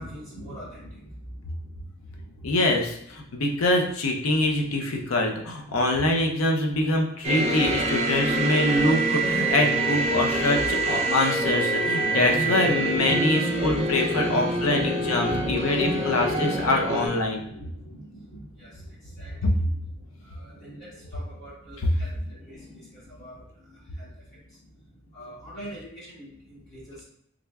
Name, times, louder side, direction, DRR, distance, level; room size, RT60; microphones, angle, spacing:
voice 1, 0.0-2.5 3.3-3.4 10.5-11.3 11.7-12.2 12.8-27.0, equal, 40° left, -10 dB, 1.4 m, -41 dB
voice 2, 2.4-17.4 19.4-19.5 21.8-21.9, left 2 dB, 90° left, 2 dB, 0.6 m, -24 dB
sound 1, 7.2-17.1, right 2 dB, 30° right, 0.5 m, -25 dB
3.6 x 3.3 x 2.2 m, 0.73 s
head